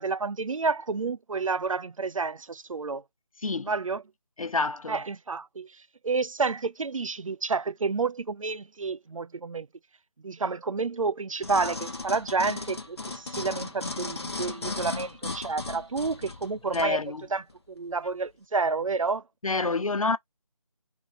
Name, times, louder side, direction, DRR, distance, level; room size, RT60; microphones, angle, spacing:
voice 1, 0.0-3.0 3.6-4.0 4.9-5.7 6.0-9.7 10.2-17.0 17.3-17.4 17.7-19.2 19.6-19.7, right 4 dB, 60° right, 0.4 m, -30 dB
voice 2, 4.4-5.0 16.7-17.2 19.4-20.2, left 3 dB, 65° left, 0.6 m, -27 dB
sound 1, 11.4-16.9 17.5-17.6, left 3 dB, 45° left, 1.0 m, -36 dB
6.0 x 2.8 x 2.6 m
figure-of-eight pair, 160°, 19 cm